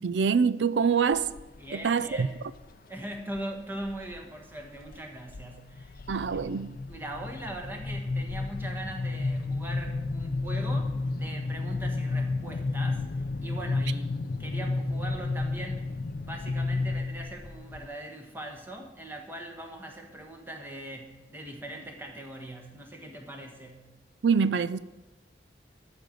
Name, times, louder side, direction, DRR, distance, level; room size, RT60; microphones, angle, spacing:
voice 1, 0.0-1.3 1.7-2.3 6.1-6.8 24.2-24.8, right 6 dB, 80° right, 0.4 m, -25 dB
sound 1, 1.1-1.7 2.1-2.7 3.4-4.2 4.6-5.0 5.3-17.9, left 3 dB, 55° left, 0.5 m, -32 dB
voice 2, 1.6-2.3 2.9-6.0 6.3-6.5 6.9-13.0 13.4-15.9 16.2-23.9, right 1 dB, 10° right, 1.5 m, -41 dB
12.0 x 5.2 x 7.8 m
head